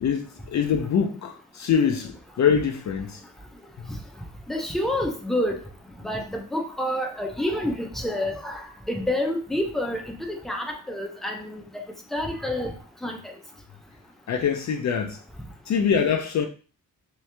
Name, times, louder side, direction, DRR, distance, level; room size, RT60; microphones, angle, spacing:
voice 1, 0.0-3.2 14.3-15.2 15.7-16.5, left 7 dB, 55° left, 0.5 m, -24 dB
voice 2, 4.5-5.6 6.0-11.6 12.1-12.7 13.0-13.3, left 1 dB, ahead, 0.5 m, -28 dB
3.6 x 3.0 x 3.3 m
wide cardioid pair, 180°, 34 cm